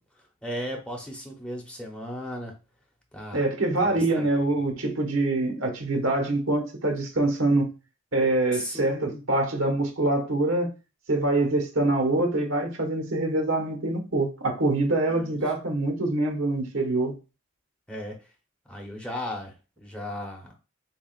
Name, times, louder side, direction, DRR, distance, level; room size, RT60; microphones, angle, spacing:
voice 1, 0.4-2.5 3.1-3.5 3.8-4.3 8.5-9.2 15.1-15.4 17.9-18.2 18.7-20.5, left 1 dB, 5° left, 0.9 m, -36 dB
voice 2, 3.3-7.7 8.1-10.7 11.1-17.2, right 2 dB, 90° right, 1.2 m, -25 dB
7.1 x 2.4 x 2.4 m
head